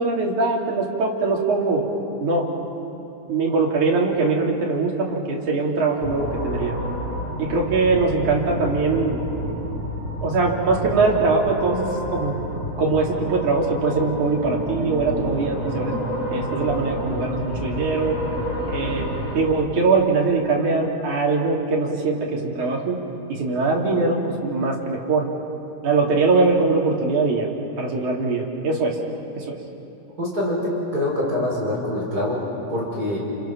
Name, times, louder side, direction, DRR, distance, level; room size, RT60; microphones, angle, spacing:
voice 1, 0.0-1.8 2.2-2.5 3.3-6.7 7.4-9.2 10.2-12.4 12.8-15.9 16.3-18.2 18.7-19.1 19.4-23.0 23.3-25.3 25.8-27.5 27.8-29.0 29.4-29.6, right 3 dB, 75° right, -1 dB, 4.3 m, -22 dB
sound 1, 6.0-19.4, equal, 20° left, 7.1 m, -30 dB
voice 2, 30.2-33.2, left 1 dB, 30° right, -4 dB, 5.5 m, -25 dB
30.0 x 29.5 x 5.9 m, 2.8 s
omnidirectional pair, 3.5 m